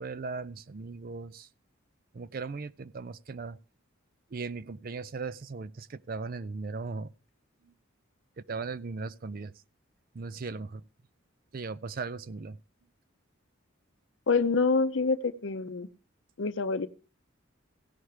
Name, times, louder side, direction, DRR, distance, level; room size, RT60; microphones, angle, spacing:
voice 1, 0.0-1.5 2.1-3.6 4.3-7.1 8.5-9.5 10.1-10.8 11.5-12.6, right 4 dB, 45° right, 0.4 m, -38 dB
voice 2, 14.3-15.9 16.4-16.9, left 4 dB, 65° left, 0.6 m, -26 dB
16.5 x 5.9 x 4.8 m
head